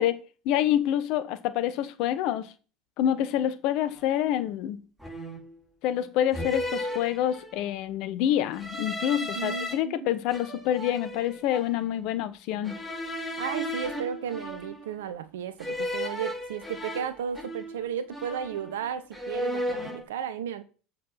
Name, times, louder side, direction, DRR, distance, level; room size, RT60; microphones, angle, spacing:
voice 1, 0.0-2.5 3.0-4.8 5.8-12.8, left 11 dB, 55° left, 1.1 m, -27 dB
sound 1, 3.9-4.1 5.0-5.5 6.3-7.7 8.5-9.7 10.3-11.8 12.6-15.0 15.6-17.8 18.1-18.8 19.1-20.0, left 1 dB, 5° right, 5.4 m, -35 dB
voice 2, 9.2-10.2 13.4-20.6, right 8 dB, 70° right, 1.1 m, -34 dB
7.7 x 6.5 x 5.8 m
figure-of-eight pair, 75°, 0 cm